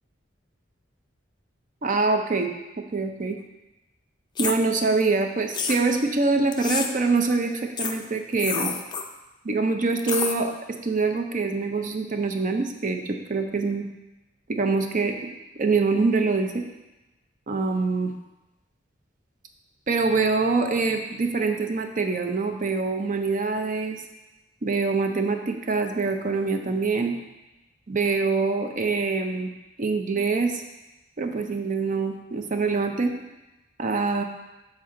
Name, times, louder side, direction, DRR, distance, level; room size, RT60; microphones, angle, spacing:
voice 1, 1.8-2.5 2.8-3.4 4.4-8.7 9.4-10.5 10.8-13.9 14.5-15.3 15.6-16.6 17.5-18.1 19.9-24.0 24.6-27.2 27.9-29.5 29.8-30.6 31.2-33.1 33.8-34.2, right 4 dB, 45° right, 5 dB, 0.6 m, -24 dB
sound 1, 4.4-4.6 5.5-5.8 6.5-6.9 7.8-7.9 8.3-9.0 10.0-10.3, left 6 dB, 25° left, 0.4 m, -28 dB
7.4 x 4.4 x 3.7 m, 1.0 s
head